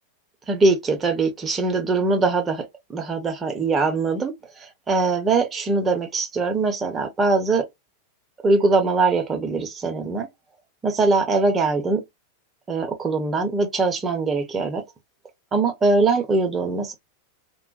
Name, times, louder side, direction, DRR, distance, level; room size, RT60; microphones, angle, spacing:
voice 1, 0.5-7.7 8.4-10.3 10.8-12.0 12.7-14.8 15.5-16.9, right 3 dB, 20° right, 0.7 m, -22 dB
2.3 x 2.1 x 2.5 m
figure-of-eight pair, 90°, 0 cm